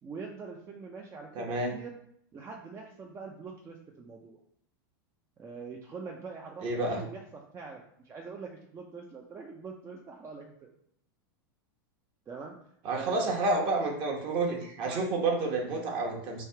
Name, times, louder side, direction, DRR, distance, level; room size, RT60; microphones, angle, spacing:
voice 1, 0.0-1.9 2.3-4.4 5.4-10.7 12.3-12.6 12.9-13.4 14.9-15.1, right 4 dB, 25° right, 0 dB, 0.5 m, -44 dB
voice 2, 1.3-1.7 6.6-7.0 12.8-16.4, right 2 dB, 45° right, 0 dB, 1.2 m, -29 dB
3.3 x 2.7 x 4.5 m, 0.69 s
hypercardioid pair, 115°, 12 cm